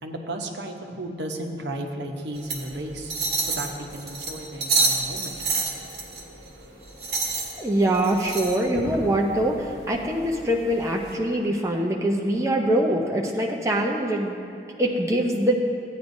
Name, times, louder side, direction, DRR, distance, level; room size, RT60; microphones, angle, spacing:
voice 1, 0.0-5.4 7.1-7.2, right 1 dB, 75° right, 3 dB, 0.9 m, -34 dB
sound 1, 2.3-11.1, right 4 dB, 60° right, 1.6 m, -30 dB
voice 2, 7.6-15.6, right 1 dB, 15° right, 0 dB, 0.6 m, -24 dB
15.0 x 9.3 x 2.7 m, 2.9 s
head